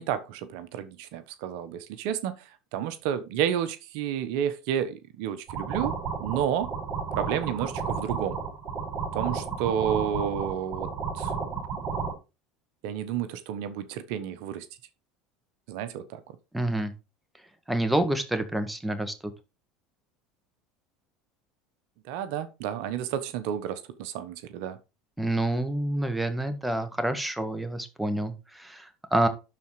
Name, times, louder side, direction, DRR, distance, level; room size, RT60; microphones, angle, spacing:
voice 1, 0.0-5.9 6.2-6.7 7.1-8.4 9.1-10.9 11.1-11.3 12.8-14.7 15.7-16.2 22.1-24.8, right 9 dB, 70° right, 1.1 m, -31 dB
sound 1, 5.5-12.1, right 5 dB, 55° right, 6.1 m, -32 dB
voice 2, 16.5-16.9 17.7-19.1 25.2-29.3, right 1 dB, 5° right, 1.7 m, -28 dB
12.0 x 4.3 x 4.8 m
hypercardioid pair, 90°, 0 cm